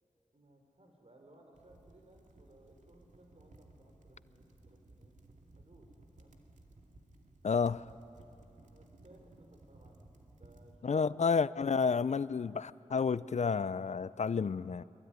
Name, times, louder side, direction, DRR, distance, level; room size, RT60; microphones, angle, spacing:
voice 1, 0.3-5.1 5.6-6.4 8.6-10.1 10.4-11.3, right 1 dB, 55° right, 2 dB, 5.5 m, -62 dB
sound 1, 1.5-10.8, right 2 dB, 75° right, 2.4 m, -59 dB
voice 2, 7.4-7.9 10.8-14.8, left 5 dB, 65° left, 18 dB, 0.5 m, -30 dB
23.5 x 23.0 x 9.5 m, 2.9 s
cardioid pair, 40°, 13 cm